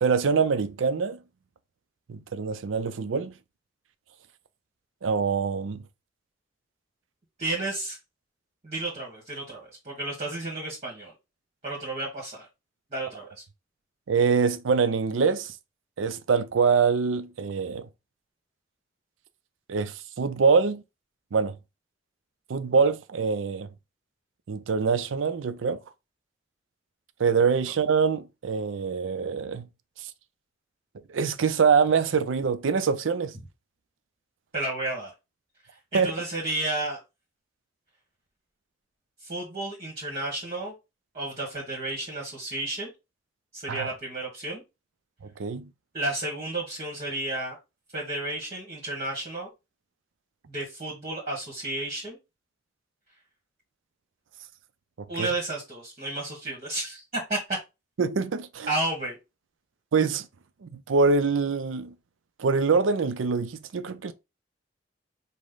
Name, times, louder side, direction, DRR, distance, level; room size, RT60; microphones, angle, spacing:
voice 1, 0.0-1.2 2.1-3.3 5.0-5.8 14.1-15.5 16.0-17.9 19.7-20.8 21.3-21.5 22.5-23.7 24.5-25.8 27.2-29.7 31.1-33.3 35.9-36.1 43.7-43.9 45.4-45.7 55.0-55.3 58.0-58.7 59.9-60.3 60.6-61.9 62.4-64.1, right 5 dB, 85° right, 0.5 m, -24 dB
voice 2, 7.4-8.0 8.6-11.1 11.6-12.5 12.9-13.4 34.5-35.1 35.9-37.0 39.2-40.7 41.1-42.9 43.5-44.6 45.9-47.6 47.9-49.5 50.5-52.2 55.1-57.6 58.7-59.2, right 2 dB, 35° right, 1.4 m, -32 dB
5.1 x 2.1 x 3.8 m
head